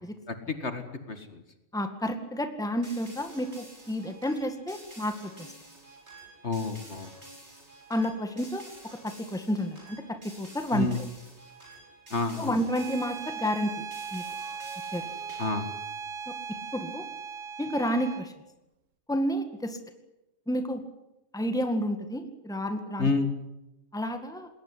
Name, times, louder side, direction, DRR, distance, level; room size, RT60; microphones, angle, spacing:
voice 1, 0.3-1.4 6.4-7.1 10.7-11.0 12.1-12.6 15.4-15.7 23.0-23.3, left 3 dB, 55° left, 8 dB, 2.2 m, -30 dB
voice 2, 1.7-5.1 7.9-10.9 12.4-13.9 14.1-14.2 14.9-15.1 16.3-17.1 17.6-18.3 19.1-19.8 20.5-20.8 21.3-23.1 23.9-24.5, equal, 5° left, 7 dB, 1.9 m, -30 dB
sound 1, 2.8-15.7, right 1 dB, 50° right, 7.4 m, -50 dB
Bowed string instrument, 12.7-18.3, right 6 dB, 65° right, 1.8 m, -38 dB
21.0 x 19.0 x 9.8 m, 0.93 s
omnidirectional pair, 1.4 m